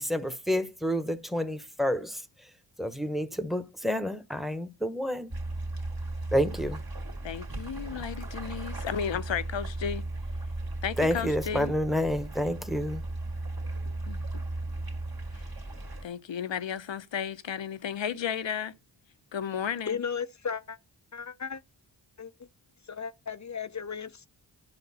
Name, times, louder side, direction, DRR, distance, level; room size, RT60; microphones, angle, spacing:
voice 1, 0.0-2.2 2.8-5.3 6.3-6.8 11.0-13.0, equal, ahead, 1.1 m, -29 dB
sound 1, 5.3-16.1, right 2 dB, 50° right, 2.1 m, -36 dB
voice 2, 7.2-10.0 10.8-11.7 14.1-14.4 15.3-15.4 16.0-18.7 19.3-20.0, left 8 dB, 70° left, 0.8 m, -33 dB
voice 3, 19.9-20.8 21.1-21.6 22.2-22.5 22.9-24.3, left 6 dB, 40° left, 0.6 m, -35 dB
10.5 x 5.2 x 4.2 m
cardioid pair, 45°, 47 cm